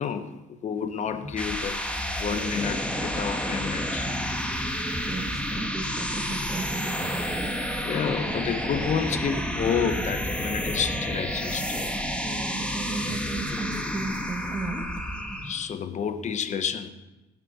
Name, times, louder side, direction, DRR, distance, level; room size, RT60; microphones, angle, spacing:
voice 1, 0.0-4.1 7.8-11.8 15.4-16.9, left 7 dB, 45° left, 10 dB, 1.0 m, -30 dB
sound 1, 1.1-15.6, equal, 5° left, 1.5 m, -30 dB
voice 2, 4.6-7.8 12.2-14.8, right 3 dB, 20° right, 2 dB, 2.2 m, -36 dB
17.5 x 8.6 x 4.2 m, 1.1 s
cardioid pair, 110°, 17 cm